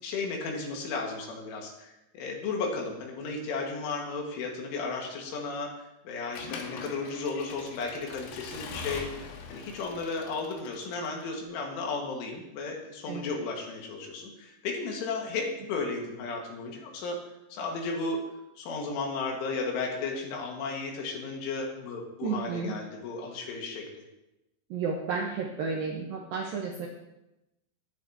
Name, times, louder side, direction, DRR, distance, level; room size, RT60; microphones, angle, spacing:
voice 1, 0.0-5.7 6.0-17.2 17.5-18.2 18.6-23.9, left 4 dB, 90° left, 0 dB, 4.4 m, -34 dB
Accelerating revving vroom / Mechanisms, 6.3-11.2, left 5 dB, 70° left, 3.1 m, -42 dB
voice 2, 22.2-22.7 24.7-26.9, right 5 dB, 70° right, -1 dB, 2.3 m, -32 dB
18.5 x 10.5 x 2.9 m, 0.93 s
omnidirectional pair, 5.4 m